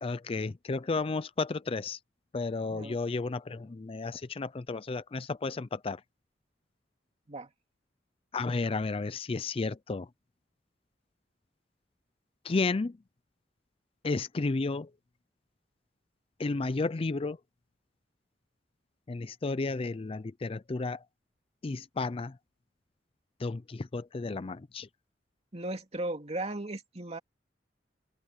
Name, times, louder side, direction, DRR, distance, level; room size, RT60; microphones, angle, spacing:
voice 1, 0.0-2.0 2.3-6.0 8.3-10.1 12.4-13.0 14.0-14.9 16.4-17.4 19.1-21.0 21.6-22.4 23.4-24.9, left 3 dB, 30° left, 0.4 m, -32 dB
voice 2, 25.5-27.2, right 2 dB, 35° right, 2.5 m, -36 dB
head